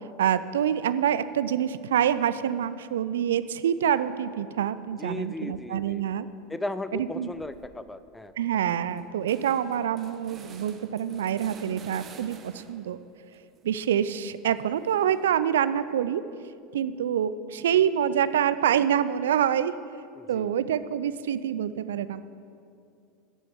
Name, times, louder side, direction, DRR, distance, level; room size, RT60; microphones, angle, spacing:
voice 1, 0.2-6.3 6.9-7.3 8.4-13.0 13.6-16.2 16.7-19.8 20.3-22.2, right 9 dB, 75° right, 14 dB, 0.4 m, -26 dB
voice 2, 5.0-6.1 6.5-8.3 20.1-20.5, left 2 dB, 10° left, 12 dB, 0.4 m, -36 dB
sound 1, 7.3-7.8 8.2-8.3 8.5-13.0 13.3-15.5, right 6 dB, 35° right, 0.9 m, -51 dB
10.5 x 6.9 x 7.2 m, 2.5 s
hypercardioid pair, 80°, 0 cm